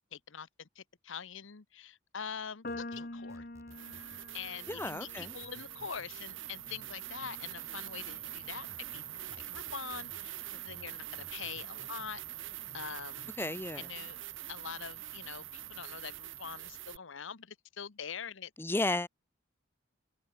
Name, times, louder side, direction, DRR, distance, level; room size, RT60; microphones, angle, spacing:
voice 1, 0.1-3.5 4.3-13.3 13.7-14.2 14.4-18.5, left 7 dB, 80° left, 1.0 m, -44 dB
sound 1, 2.6-9.0, left 2 dB, 45° left, 1.8 m, -48 dB
sound 2, 2.7-4.2 4.7-6.1 6.7-8.1 8.7-10.2 10.7-12.1 12.7-14.1, equal, 15° right, 2.3 m, -58 dB
sound 3, 3.0-3.1 3.7-17.0, right 13 dB, 85° right, 3.7 m, -44 dB
voice 2, 4.7-5.3 13.4-13.9 18.6-19.1, left 2 dB, 10° left, 0.5 m, -33 dB
head